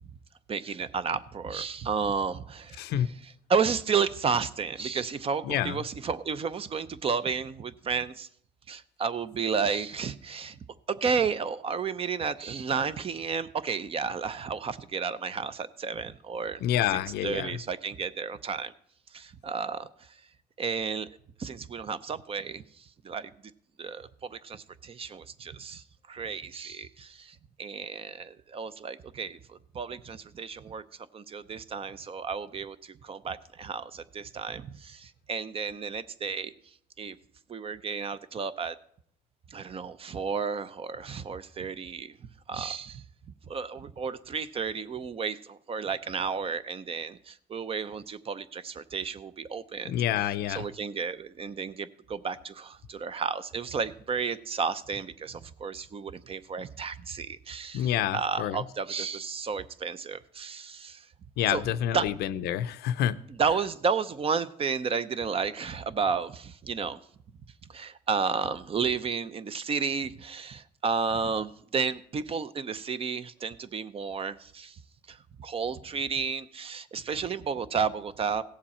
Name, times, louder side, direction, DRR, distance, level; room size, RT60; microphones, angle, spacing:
voice 1, 0.5-8.3 8.7-10.6 10.9-18.7 19.1-19.9 20.6-21.1 21.4-23.3 23.8-30.8 31.1-36.5 37.0-37.2 37.5-38.8 39.5-42.1 42.5-43.0 43.5-61.1 61.5-61.7 61.9-62.1 63.3-67.0 67.7-74.8 75.1-78.4, right 5 dB, 35° right, 14 dB, 0.6 m, -32 dB
voice 2, 2.8-3.1 5.4-5.8 16.6-17.6 49.8-50.6 57.7-58.6 61.4-63.2, left 11 dB, 75° left, 13 dB, 0.5 m, -28 dB
16.5 x 7.3 x 4.3 m, 0.65 s
cardioid pair, 110°, 17 cm